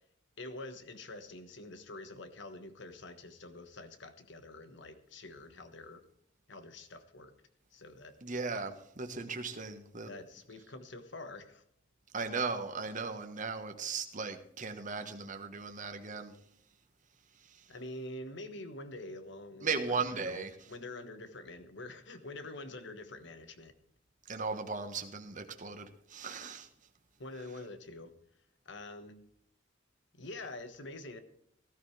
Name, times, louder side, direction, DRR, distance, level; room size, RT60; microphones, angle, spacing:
voice 1, 0.4-6.0 6.5-7.3 7.7-8.1 8.5-8.7 10.0-11.6 17.7-23.7 27.2-28.1 28.6-29.2 30.1-31.2, left 2 dB, 65° left, 9 dB, 1.4 m, -46 dB
voice 2, 8.2-10.1 12.1-16.3 19.6-20.5 24.3-26.7, right 4 dB, 45° right, 6 dB, 1.4 m, -37 dB
18.0 x 13.0 x 3.4 m, 0.69 s
head